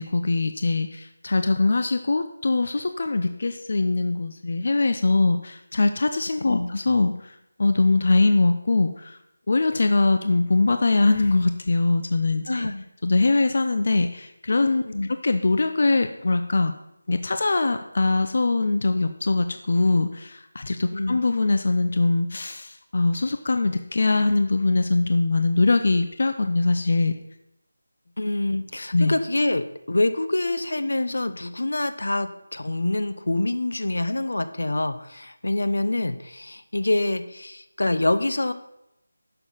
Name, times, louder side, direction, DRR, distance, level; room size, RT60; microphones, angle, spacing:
voice 1, 0.0-7.3 7.6-9.2 9.5-12.7 13.0-14.8 15.2-16.7 17.1-27.1 28.9-29.1, left 3 dB, 45° left, 8 dB, 0.6 m, -22 dB
voice 2, 12.5-12.8 14.8-15.1 20.9-21.2 28.2-38.5, left 2 dB, 75° left, 11 dB, 1.0 m, -26 dB
11.0 x 7.0 x 5.6 m, 0.84 s
figure-of-eight pair, 175°, 0 cm